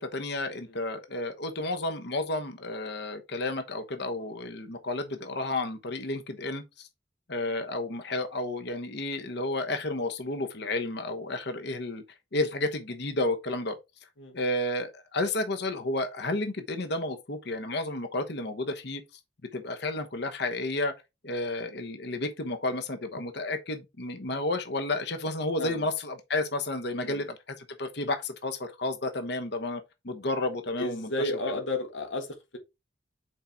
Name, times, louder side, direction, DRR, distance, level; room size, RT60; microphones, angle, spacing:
voice 1, 0.0-6.9 7.3-12.0 12.3-13.8 14.3-19.0 19.5-20.9 21.2-31.3, left 2 dB, 60° left, 1.0 m, -31 dB
voice 2, 26.9-27.3 30.8-32.6, left 2 dB, 85° left, 1.7 m, -33 dB
6.6 x 4.4 x 3.6 m
head